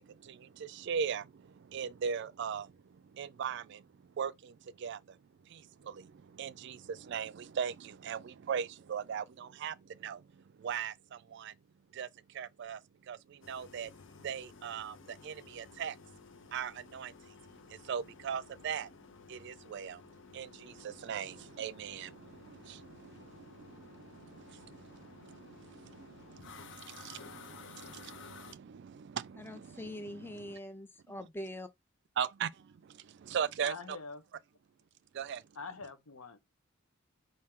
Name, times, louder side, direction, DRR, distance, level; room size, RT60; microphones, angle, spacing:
voice 1, 0.0-5.2 5.4-11.6 11.9-12.8 13.1-13.9 14.2-16.0 16.5-17.3 17.7-18.9 19.3-30.6 31.1-31.2 32.2-34.0 35.1-35.4, right 7 dB, 55° right, 0.3 m, -40 dB
sound 1, 13.4-28.5, left 5 dB, 60° left, 0.6 m, -54 dB
voice 2, 29.4-31.7, left 1 dB, 10° left, 0.5 m, -43 dB
voice 3, 33.6-34.2 35.5-36.4, left 4 dB, 90° left, 0.8 m, -44 dB
4.4 x 2.7 x 3.6 m
head